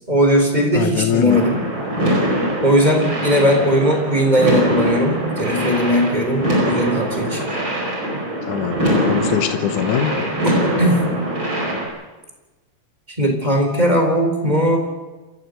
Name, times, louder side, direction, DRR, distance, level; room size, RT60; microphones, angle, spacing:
voice 1, 0.0-1.7 2.6-7.4 10.4-11.0 13.2-14.8, equal, 15° right, 3 dB, 4.0 m, -18 dB
voice 2, 0.7-1.4 8.5-10.1, left 10 dB, 85° left, 7 dB, 2.6 m, -22 dB
sound 1, 1.3-11.9, equal, 40° right, 6.0 m, -22 dB
27.0 x 14.5 x 7.9 m, 1.2 s
omnidirectional pair, 3.4 m